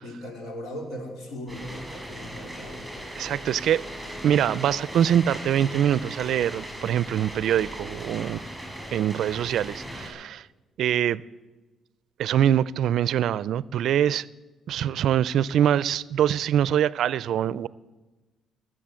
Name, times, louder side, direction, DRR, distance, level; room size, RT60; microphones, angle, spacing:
voice 1, 0.0-2.9, left 1 dB, 75° left, 3.5 m, -38 dB
sound 1, 1.5-10.1, equal, 5° left, 6.2 m, -38 dB
Bowed string instrument, 2.6-7.6, right 1 dB, 35° left, 4.2 m, -48 dB
voice 2, 3.2-3.8 4.2-8.4 8.9-10.5 10.8-11.2 12.2-14.3 14.7-17.7, right 10 dB, 75° right, 0.4 m, -24 dB
21.0 x 7.7 x 7.6 m
cardioid pair, 90°, 0 cm